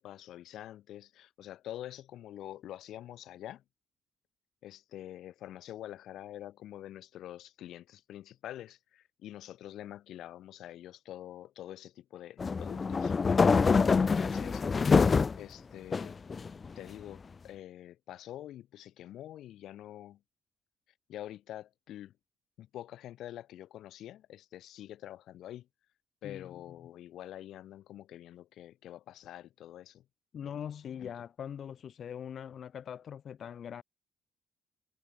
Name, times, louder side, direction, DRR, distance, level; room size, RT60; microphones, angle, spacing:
voice 1, 0.0-3.6 4.6-13.2 14.0-15.1 15.4-16.2 16.8-20.2 21.1-22.1 22.6-25.7 26.2-30.1 31.0-31.1, left 12 dB, 85° left, 1.8 m, -46 dB
sound 1, 12.4-15.4 15.9-16.8, left 5 dB, 30° left, 0.6 m, -25 dB
voice 2, 30.3-33.8, left 8 dB, 55° left, 1.4 m, -42 dB
cardioid pair, 125°, 0 cm